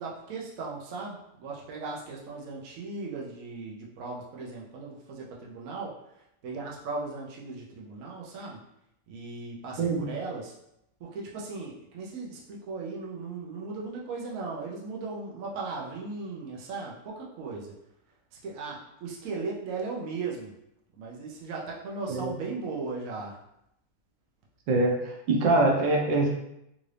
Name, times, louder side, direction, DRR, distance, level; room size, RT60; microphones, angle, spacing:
voice 1, 0.0-5.9 6.4-8.6 9.1-10.5 11.0-17.7 18.4-20.5 21.0-23.3, right 3 dB, 60° right, -3 dB, 1.0 m, -37 dB
voice 2, 9.8-10.1 22.1-22.4 24.7-25.0 25.3-26.3, right 2 dB, 80° right, 0 dB, 1.4 m, -23 dB
3.7 x 2.7 x 3.2 m, 0.81 s
omnidirectional pair, 1.9 m